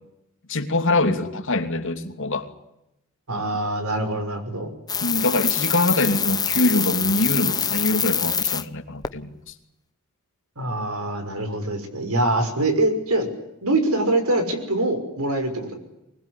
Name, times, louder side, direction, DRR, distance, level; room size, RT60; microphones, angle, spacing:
voice 1, 0.5-2.5 5.0-9.3, left 2 dB, 60° left, 6 dB, 2.8 m, -23 dB
voice 2, 3.3-4.7 10.6-13.3 13.6-15.7, right 2 dB, 85° right, 7 dB, 5.9 m, -24 dB
sound 1, 4.9-8.6 9.0-9.1, left 7 dB, 20° left, 0.9 m, -24 dB
24.5 x 20.5 x 9.9 m, 0.90 s
head